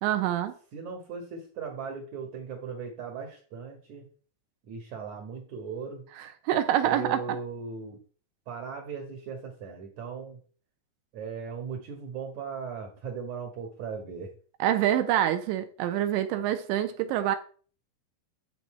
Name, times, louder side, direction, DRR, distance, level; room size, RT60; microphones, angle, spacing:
voice 1, 0.0-0.5 6.2-7.2 14.6-17.4, right 11 dB, 80° right, 3.0 m, -26 dB
voice 2, 0.7-4.1 4.7-6.0 6.8-8.0 8.5-10.4 11.1-14.3, right 5 dB, 60° right, 1.9 m, -38 dB
10.5 x 4.1 x 7.5 m
omnidirectional pair, 5.7 m